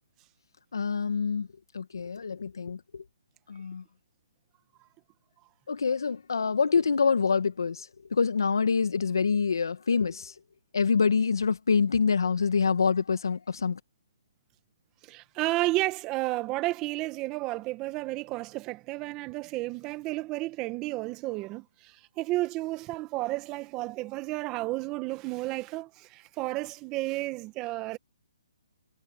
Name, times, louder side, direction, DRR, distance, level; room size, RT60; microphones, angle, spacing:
voice 1, 0.7-1.5 1.7-3.0 3.5-3.8 5.7-10.3 10.7-13.8, left 5 dB, 80° left, 1.6 m, -26 dB
voice 2, 15.0-28.0, right 19 dB, 20° right, 1.7 m, -32 dB
hypercardioid pair, 155°, 2 cm